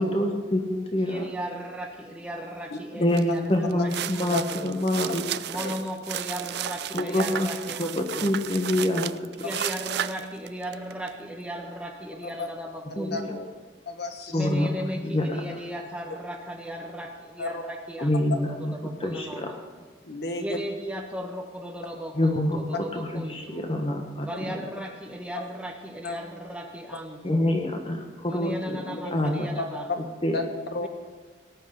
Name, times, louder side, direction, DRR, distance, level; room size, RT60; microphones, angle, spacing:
voice 1, 0.0-1.3 3.0-5.2 5.5-5.6 6.9-7.5 7.8-9.1 9.4-9.7 13.0-13.3 14.3-14.7 14.9-15.4 18.0-18.7 19.0-19.5 22.1-22.6 22.9-24.6 27.2-29.5 30.2-30.4, left 1 dB, 30° left, 3 dB, 1.2 m, -26 dB
voice 2, 1.1-4.7 5.5-8.4 9.4-13.5 14.3-19.6 20.4-23.6 24.2-27.5 28.3-29.9 30.8-30.9, equal, 5° right, 2 dB, 1.2 m, -36 dB
sound 1, 3.1-3.3 3.7-11.1, right 10 dB, 55° right, 0.4 m, -33 dB
voice 3, 13.8-14.5 17.4-17.6 20.0-20.6 24.3-24.4 25.3-25.4 26.0-26.2 28.9-29.2 29.6-29.7 30.3-30.9, left 3 dB, 55° left, 5 dB, 1.5 m, -32 dB
18.5 x 6.4 x 9.6 m, 1.4 s
head